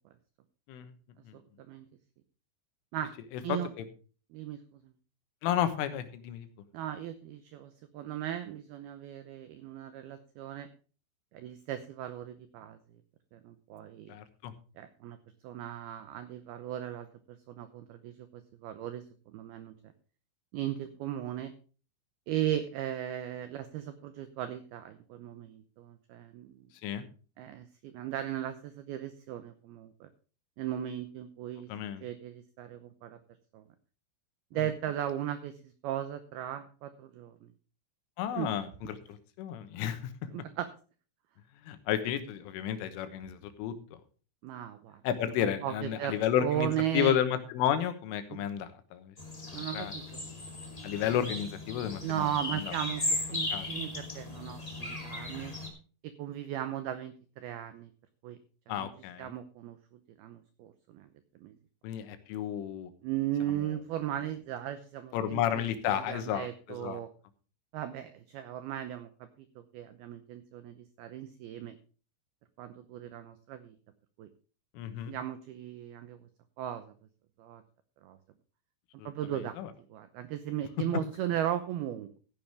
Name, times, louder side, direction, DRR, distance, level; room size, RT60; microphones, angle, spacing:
voice 1, 3.5-3.9 5.4-6.5 14.1-14.5 26.8-27.0 31.7-32.1 38.2-40.1 41.7-44.0 45.0-49.2 49.5-49.9 50.8-52.7 53.3-53.7 58.7-59.3 61.8-62.9 65.1-67.0 74.8-75.2 79.0-79.1 79.6-79.7, left 10 dB, 90° left, 9 dB, 3.8 m, -32 dB
voice 2, 4.3-4.9 6.7-10.7 11.3-12.8 13.3-14.1 14.8-15.2 15.4-19.7 20.5-21.5 22.3-26.7 27.4-30.1 30.6-31.7 32.0-33.2 33.5-33.6 34.5-37.5 38.4-38.5 40.3-40.7 44.4-45.0 45.4-47.1 48.3-48.5 49.5-50.2 52.0-53.0 53.3-55.5 56.0-57.9 58.2-58.4 58.8-58.9 59.2-61.1 61.4-61.5 63.0-67.1 67.7-69.3 69.6-71.8 72.6-73.8 74.2-74.3 75.1-76.2 76.6-76.9 77.4-77.6 78.0-78.2 79.1-79.6 79.9-82.2, right 11 dB, 85° right, 10 dB, 2.2 m, -37 dB
sound 1, 49.2-55.7, left 2 dB, 75° left, 0.3 m, -37 dB
14.5 x 10.5 x 3.4 m, 0.37 s
omnidirectional pair, 5.6 m